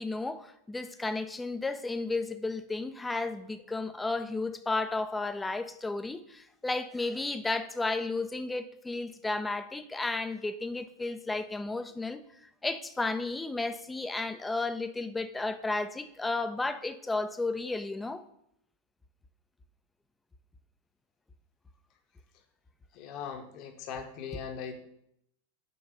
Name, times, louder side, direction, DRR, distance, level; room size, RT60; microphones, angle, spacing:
voice 1, 0.0-12.2 12.6-18.2, left 3 dB, 10° left, 0.6 m, -33 dB
voice 2, 22.9-24.8, left 7 dB, 40° left, 1.1 m, -40 dB
5.7 x 4.7 x 6.5 m
figure-of-eight pair, 90°, 0 cm